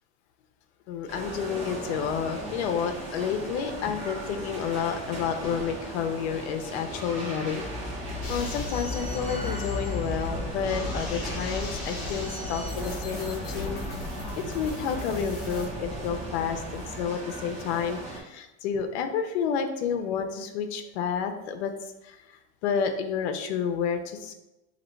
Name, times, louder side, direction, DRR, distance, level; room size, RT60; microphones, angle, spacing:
voice 1, 0.9-7.6 8.3-14.0 14.4-21.7 22.0-24.3, left 7 dB, 85° left, 6 dB, 0.7 m, -30 dB
sound 1, 1.1-18.2, equal, 20° right, 1.1 m, -36 dB
sound 2, 5.4-6.0, equal, 5° left, 1.4 m, -42 dB
sound 3, 8.2-15.6, left 2 dB, 30° left, 1.2 m, -39 dB
4.0 x 2.9 x 4.4 m, 0.95 s
supercardioid pair, 180°, 32 cm